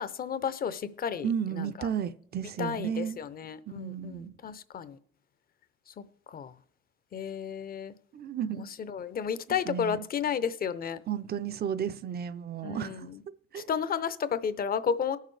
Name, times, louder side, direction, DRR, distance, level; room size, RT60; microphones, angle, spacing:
voice 1, 0.0-1.9 2.6-5.0 5.9-6.6 7.1-8.0 8.5-11.0 12.6-13.2 13.5-15.2, left 7 dB, 50° left, 0.7 m, -33 dB
voice 2, 1.2-3.2 3.7-4.4 8.1-8.6 9.7-10.0 11.1-13.1 13.5-13.7, right 8 dB, 50° right, 0.5 m, -33 dB
19.0 x 6.6 x 3.3 m
cardioid pair, 90°, 20 cm